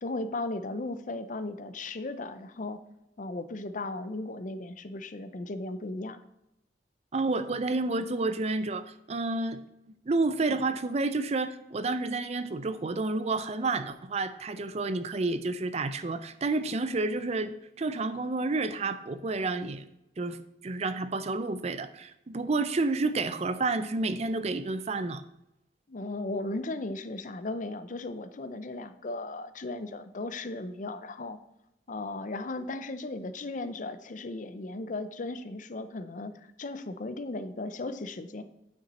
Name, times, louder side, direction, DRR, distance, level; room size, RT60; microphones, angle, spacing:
voice 1, 0.0-2.8 3.2-6.2 25.9-31.4 31.9-38.4, left 2 dB, 45° left, 11 dB, 0.6 m, -36 dB
voice 2, 7.1-9.6 10.1-19.9 20.2-25.2, right 3 dB, 35° right, 12 dB, 0.5 m, -30 dB
8.8 x 6.0 x 4.1 m, 0.88 s
head